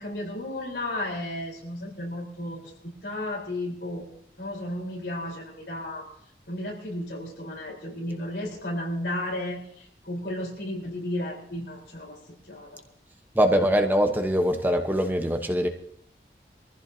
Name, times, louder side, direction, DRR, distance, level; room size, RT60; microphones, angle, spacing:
voice 1, 0.0-4.1 4.4-6.1 6.5-12.2 12.5-12.8, left 1 dB, 80° left, -3 dB, 4.1 m, -33 dB
voice 2, 13.3-15.7, equal, 10° right, 5 dB, 1.0 m, -23 dB
24.0 x 15.0 x 2.8 m, 0.69 s
head